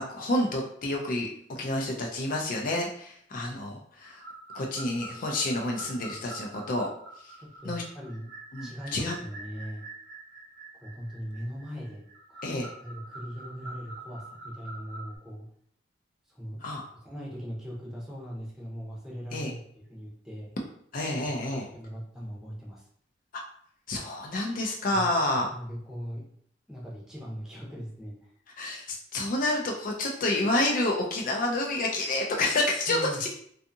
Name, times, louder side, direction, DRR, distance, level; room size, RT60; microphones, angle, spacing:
voice 1, 0.0-4.2 4.5-6.9 7.6-7.8 8.5-9.2 12.4-12.7 16.6-16.9 19.3-19.5 20.9-21.6 23.9-25.5 28.6-33.3, left 2 dB, 50° left, 0 dB, 0.4 m, -29 dB
sound 1, 4.0-15.2, right 2 dB, 75° right, 0.8 m, -45 dB
voice 2, 7.4-8.3 8.6-9.8 10.7-12.0 12.3-15.4 16.3-16.6 17.0-19.6 19.9-20.5 21.2-22.8 24.9-25.1 25.5-26.2 26.7-28.3 32.9-33.3, equal, 5° right, -5 dB, 0.7 m, -40 dB
2.6 x 2.3 x 2.6 m, 0.64 s
head